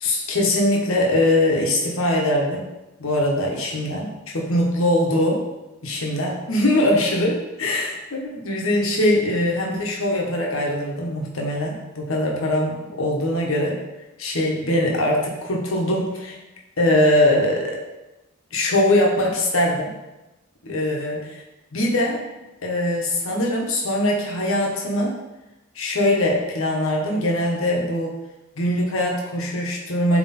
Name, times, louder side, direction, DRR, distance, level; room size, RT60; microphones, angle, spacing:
voice 1, 0.0-2.7 3.0-4.1 4.3-5.4 5.8-13.8 14.2-16.4 16.8-17.8 18.5-19.9 20.6-21.4 21.7-22.2 22.6-25.2 25.7-28.1 28.6-30.2, left 1 dB, 75° left, -1 dB, 1.2 m, -22 dB
7.4 x 3.3 x 4.2 m, 0.99 s
head